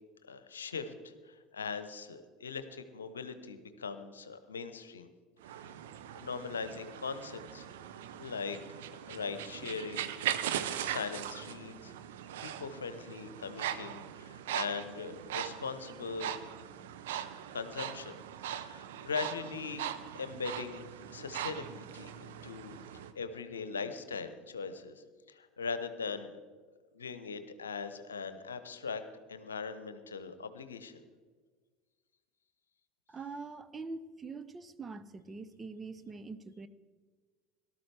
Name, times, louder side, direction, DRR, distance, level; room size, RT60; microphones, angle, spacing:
voice 1, 0.3-5.1 5.5-5.7 6.1-7.7 8.2-8.6 9.1-10.1 10.8-11.9 12.4-16.3 17.5-18.2 18.5-19.9 20.1-22.8 23.1-26.4 26.9-29.0 29.3-31.0, left 5 dB, 80° left, 11 dB, 0.9 m, -40 dB
sound 1, 5.4-23.1, right 10 dB, 65° right, 0.7 m, -40 dB
voice 2, 33.1-36.7, right 4 dB, 20° right, 12 dB, 0.7 m, -44 dB
18.0 x 12.5 x 3.4 m, 1.5 s
figure-of-eight pair, 70°, 0 cm